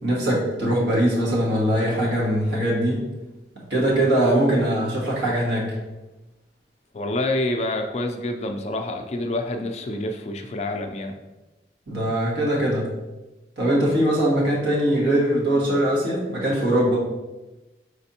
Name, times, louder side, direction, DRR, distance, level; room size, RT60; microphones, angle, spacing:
voice 1, 0.0-3.0 3.7-5.7 11.9-12.9 13.6-17.0, right 1 dB, 80° right, -5 dB, 1.5 m, -21 dB
voice 2, 6.9-11.2, left 1 dB, 40° left, 4 dB, 0.4 m, -27 dB
5.1 x 3.3 x 2.8 m, 1.1 s
head